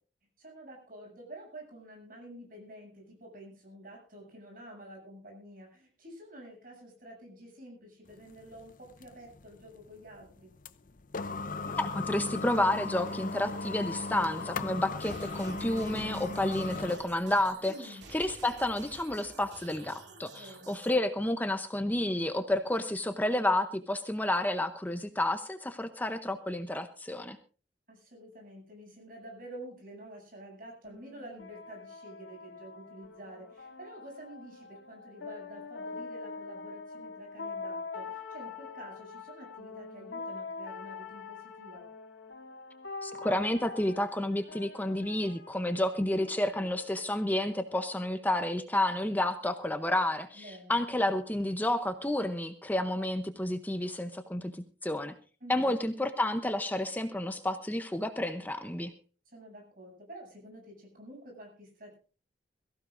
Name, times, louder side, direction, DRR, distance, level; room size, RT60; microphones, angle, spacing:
voice 1, 0.4-10.5 17.6-18.1 20.3-20.7 27.9-41.9 50.3-50.8 55.4-55.7 59.3-62.0, right 1 dB, 50° right, 0 dB, 7.9 m, -49 dB
sound 1, 8.1-17.1, left 3 dB, 45° left, 0.7 m, -38 dB
voice 2, 11.7-27.4 43.0-55.1 55.5-58.9, left 1 dB, 10° left, 8 dB, 0.7 m, -30 dB
sound 2, 15.0-21.0, right 3 dB, 70° right, 2.7 m, -50 dB
sound 3, 30.8-48.3, left 4 dB, 90° left, 2.2 m, -44 dB
22.5 x 15.5 x 2.6 m, 0.37 s
head